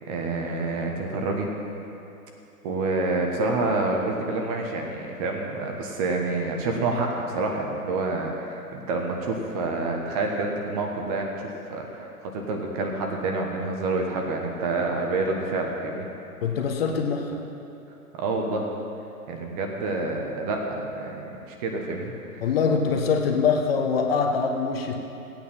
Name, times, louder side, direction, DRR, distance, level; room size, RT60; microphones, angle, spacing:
voice 1, 0.0-1.5 2.6-16.1 18.1-18.7 19.3-22.5, right 3 dB, 25° right, 1 dB, 1.2 m, -28 dB
voice 2, 16.4-17.4 22.4-24.9, left 5 dB, 40° left, 2 dB, 1.3 m, -23 dB
15.0 x 9.0 x 5.7 m, 2.9 s
figure-of-eight pair, 125°, 46 cm